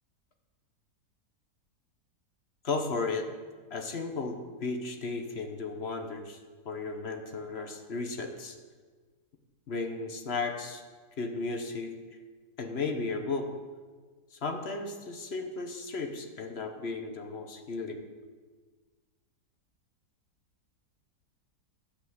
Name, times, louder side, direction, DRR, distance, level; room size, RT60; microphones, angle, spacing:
voice 1, 2.6-3.3 3.7-6.4 6.6-8.6 9.7-10.8 11.2-11.9 12.6-13.5 14.3-18.0, left 3 dB, 45° left, 5 dB, 1.1 m, -34 dB
12.0 x 5.5 x 7.9 m, 1.5 s
omnidirectional pair, 1.7 m